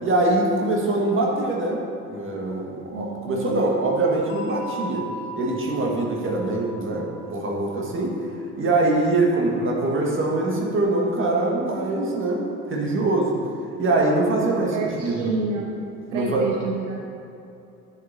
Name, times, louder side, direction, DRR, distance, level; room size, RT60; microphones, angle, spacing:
voice 1, 0.0-1.8 2.1-5.1 5.4-8.2 8.6-13.3 13.8-15.3 16.1-16.5, right 2 dB, 30° right, -1 dB, 1.9 m, -23 dB
voice 2, 2.9-3.6 14.7-15.7 16.1-17.0, right 4 dB, 70° right, 1 dB, 0.8 m, -28 dB
sound 1, 4.3-8.9, right 1 dB, 70° left, 1.0 m, -38 dB
12.5 x 8.0 x 2.9 m, 2.8 s
figure-of-eight pair, 55°, 39 cm